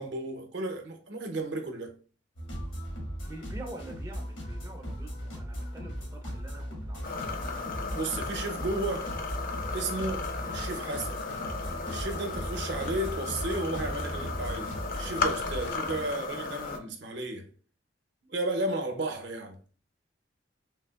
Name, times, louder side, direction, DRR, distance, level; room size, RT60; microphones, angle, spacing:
voice 1, 0.0-1.9 7.9-9.1 9.7-11.2 11.9-17.5 18.2-19.6, right 2 dB, 70° right, 0.7 m, -33 dB
sound 1, 2.4-16.1, equal, 85° left, 1.3 m, -38 dB
voice 2, 3.2-7.1, right 2 dB, 15° right, 0.4 m, -46 dB
sound 2, 7.0-16.8, left 4 dB, 50° left, 0.4 m, -35 dB
3.4 x 2.7 x 2.3 m
head